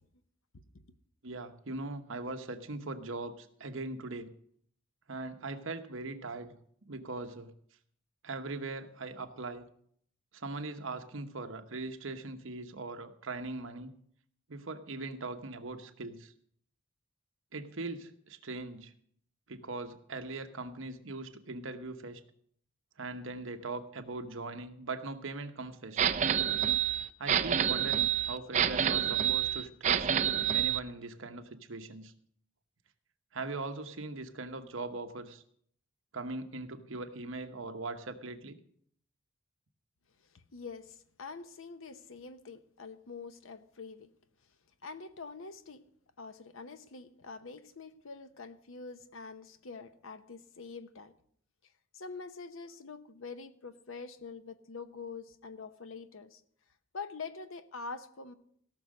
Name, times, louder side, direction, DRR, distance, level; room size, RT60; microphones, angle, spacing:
voice 1, 1.2-4.3 5.1-6.5 6.9-7.5 8.2-9.7 10.3-13.9 14.5-16.3 17.5-18.9 19.5-22.2 23.0-26.0 27.2-30.1 30.5-32.1 33.3-35.4 36.1-38.6, right 3 dB, 65° right, 7 dB, 1.0 m, -40 dB
sound 1, 26.0-30.8, right 9 dB, 35° right, 0.4 m, -28 dB
voice 2, 40.5-44.1 44.8-45.8 46.2-51.1 51.9-56.4 56.9-58.3, left 4 dB, 70° left, 11 dB, 0.9 m, -45 dB
17.0 x 6.4 x 6.4 m, 0.65 s
head